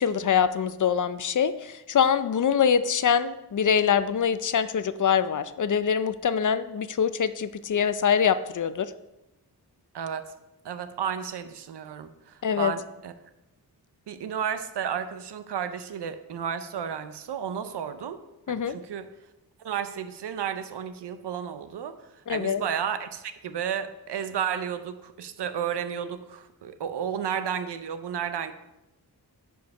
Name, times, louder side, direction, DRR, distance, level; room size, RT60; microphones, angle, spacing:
voice 1, 0.0-8.9 12.4-12.7 18.5-18.7 22.3-22.6, left 7 dB, 50° left, 13 dB, 0.5 m, -24 dB
voice 2, 9.9-10.3 10.6-13.1 14.1-18.2 18.5-19.1 19.6-22.0 22.3-28.5, right 8 dB, 80° right, 11 dB, 0.8 m, -32 dB
10.5 x 4.7 x 5.3 m, 0.95 s
cardioid pair, 80°, 40 cm